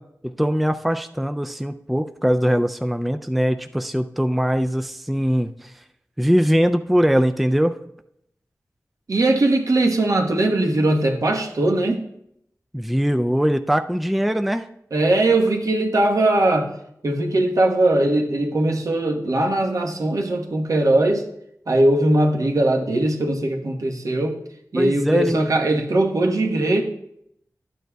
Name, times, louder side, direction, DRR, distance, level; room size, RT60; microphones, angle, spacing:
voice 1, 0.2-5.7 6.2-7.8 12.7-14.7 24.8-25.6, equal, ahead, 8 dB, 0.3 m, -21 dB
voice 2, 9.1-12.0 14.9-16.7 17.0-21.2 21.7-24.4 24.7-26.8, right 2 dB, 70° right, 1 dB, 1.1 m, -20 dB
12.0 x 9.1 x 2.3 m, 0.76 s
wide cardioid pair, 90°, 6 cm